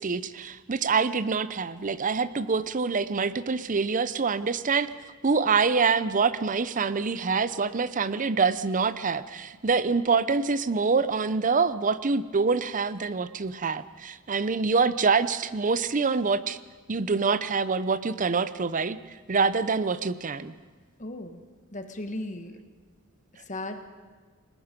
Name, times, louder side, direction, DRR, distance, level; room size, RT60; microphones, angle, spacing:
voice 1, 0.0-4.9 5.2-16.6 16.9-19.0 19.3-20.5, right 4 dB, 40° right, 15 dB, 0.7 m, -25 dB
voice 2, 21.0-21.4 21.7-22.6 23.5-23.8, left 1 dB, 35° left, 7 dB, 1.4 m, -36 dB
29.5 x 19.5 x 5.2 m, 1.5 s
head